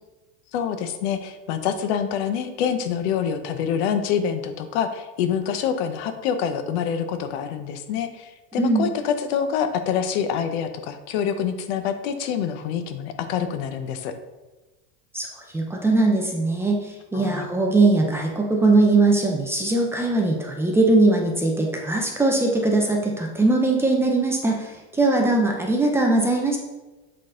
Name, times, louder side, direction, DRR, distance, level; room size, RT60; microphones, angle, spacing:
voice 1, 0.5-14.1 17.1-17.5, left 8 dB, 70° left, 8 dB, 0.8 m, -26 dB
voice 2, 15.5-26.6, right 2 dB, 5° right, 0 dB, 0.5 m, -20 dB
7.7 x 3.9 x 3.8 m, 1.1 s
supercardioid pair, 155°, 34 cm